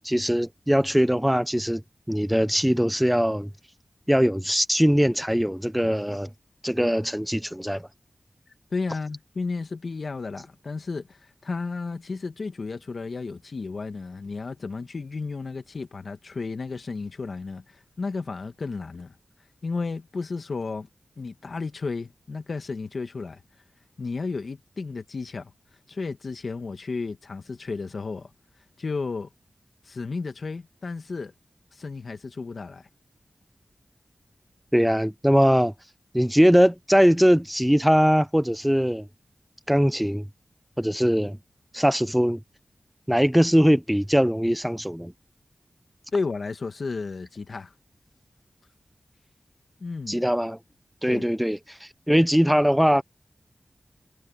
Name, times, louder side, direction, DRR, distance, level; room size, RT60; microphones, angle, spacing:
voice 1, 0.0-1.8 2.1-3.5 4.1-6.3 6.6-7.9 34.7-35.7 36.1-39.1 39.7-40.3 40.8-41.4 41.7-42.4 43.1-45.1 50.1-50.6 51.0-53.0, equal, 5° right, 0.7 m, -21 dB
voice 2, 8.7-19.1 19.6-20.9 21.2-23.4 24.0-25.5 25.9-28.3 28.8-29.3 29.8-31.3 31.7-32.9 46.1-47.7 49.8-50.2 51.1-51.2, left 4 dB, 65° left, 1.9 m, -33 dB
wide cardioid pair, 75°, 0 cm